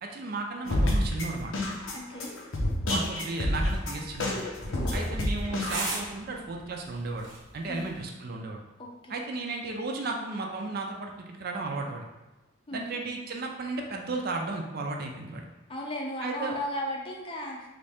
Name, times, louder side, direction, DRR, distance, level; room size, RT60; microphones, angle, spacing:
voice 1, 0.0-1.5 2.9-4.4 4.9-7.3 7.5-8.6 9.1-12.1 12.7-15.5 16.2-16.6, right 3 dB, 50° right, 2 dB, 0.4 m, -34 dB
sound 1, 0.6-6.0, left 1 dB, 90° left, 0.7 m, -29 dB
voice 2, 1.9-2.4 4.7-5.0 7.7-7.9 8.8-9.2 12.7-13.0 15.7-17.7, left 1 dB, 30° left, 0 dB, 0.5 m, -35 dB
sound 2, 3.0-8.0, right 2 dB, 85° right, 0.9 m, -41 dB
3.2 x 2.6 x 3.4 m, 1.1 s
head